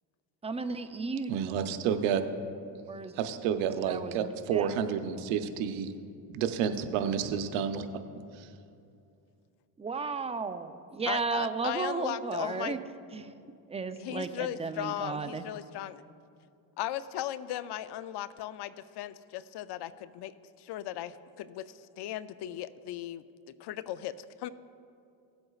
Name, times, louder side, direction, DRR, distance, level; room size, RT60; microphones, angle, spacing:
voice 1, 0.4-1.3 2.9-3.1 3.7-4.7 9.8-12.8 13.1-13.3 13.7-15.4, right 4 dB, 15° right, 9 dB, 0.5 m, -34 dB
voice 2, 1.3-2.2 3.2-5.9 6.3-7.9 8.3-8.5, right 8 dB, 85° right, 8 dB, 0.8 m, -30 dB
voice 3, 11.1-12.8 14.0-16.0 16.8-23.2 23.6-24.5, left 12 dB, 60° left, 15 dB, 0.5 m, -37 dB
17.0 x 7.9 x 2.4 m, 2.5 s
supercardioid pair, 80°, 45 cm